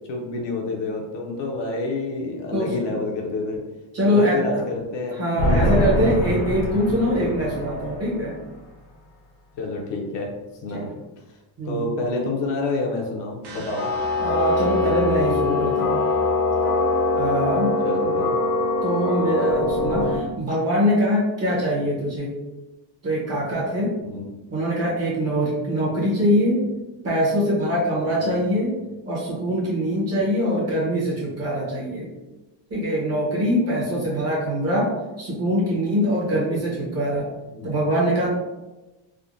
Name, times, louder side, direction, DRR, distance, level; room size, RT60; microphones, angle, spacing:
voice 1, 0.1-3.6 4.0-6.1 9.5-10.3 10.6-10.9 11.7-13.9 17.8-18.4 24.0-24.3 28.2-28.4 37.5-37.8, left 2 dB, 60° left, 0 dB, 0.7 m, -28 dB
voice 2, 3.9-4.6 5.2-8.3 10.7-10.8 11.6-11.9 14.2-16.0 17.1-17.7 18.0-18.1 18.8-22.3 23.0-23.9 24.5-26.6 27.0-28.7 29.0-32.1 32.7-37.3 37.6-38.3, equal, 30° right, -5 dB, 0.9 m, -23 dB
sound 1, 5.4-8.3 13.8-20.2, left 2 dB, 80° left, 1.1 m, -23 dB
sound 2, 13.4-19.5, equal, 55° right, 0.8 m, -38 dB
3.5 x 2.1 x 2.5 m, 1.1 s
cardioid pair, 170°, 48 cm